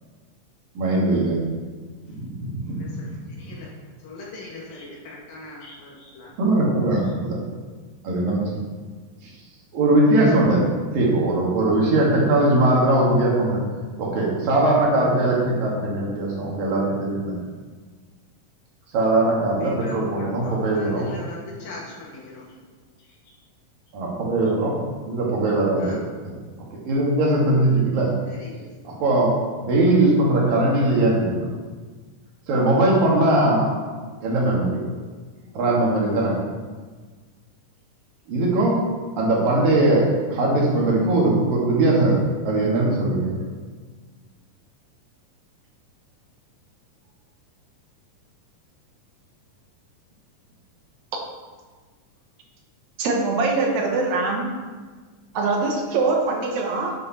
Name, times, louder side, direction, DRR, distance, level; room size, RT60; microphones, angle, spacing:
voice 1, 0.8-1.4 2.1-3.0 3.5-3.6 6.4-7.4 8.0-8.6 9.2-9.3 9.7-10.7 10.9-13.6 14.0-17.4 18.9-21.1 23.9-24.8 25.1-26.0 26.2-26.3 26.9-28.1 28.9-31.5 32.5-33.7 34.2-34.8 35.5-36.4 38.3-38.8 39.2-43.4, right 2 dB, 85° right, -3 dB, 4.1 m, -20 dB
voice 2, 2.6-6.3 7.0-7.1 19.6-22.6 23.0-23.4 25.8-26.0 28.3-29.0, left 2 dB, 90° left, -4 dB, 4.4 m, -40 dB
voice 3, 53.0-54.5 55.4-56.9, right 3 dB, 60° right, 1 dB, 2.5 m, -23 dB
11.0 x 10.0 x 4.4 m, 1.4 s
omnidirectional pair, 3.9 m